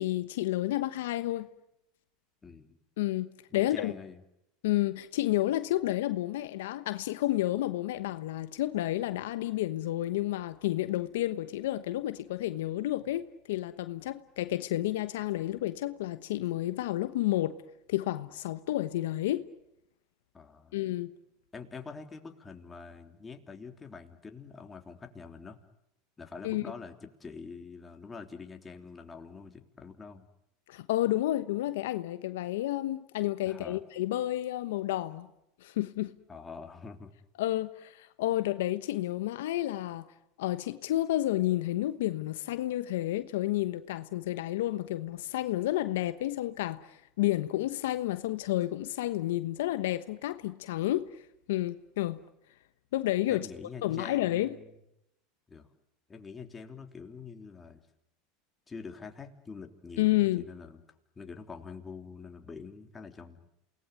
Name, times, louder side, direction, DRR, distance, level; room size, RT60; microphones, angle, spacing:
voice 1, 0.0-1.5 3.0-3.9 4.6-17.6 17.9-19.5 20.7-21.1 26.4-26.6 30.7-35.3 35.6-36.1 37.4-40.1 40.4-51.2 51.5-52.2 52.9-53.5 53.8-54.6 60.0-60.4, left 15 dB, 80° left, 1.1 m, -30 dB
voice 2, 2.4-2.8 3.5-4.2 20.3-20.8 21.5-25.6 26.2-30.3 33.4-33.8 36.3-37.1 53.3-54.7 55.5-55.7 56.1-57.8 58.7-60.8 61.1-63.4, left 5 dB, 20° left, 3.3 m, -45 dB
28.5 x 19.5 x 9.2 m
supercardioid pair, 110°, 0 cm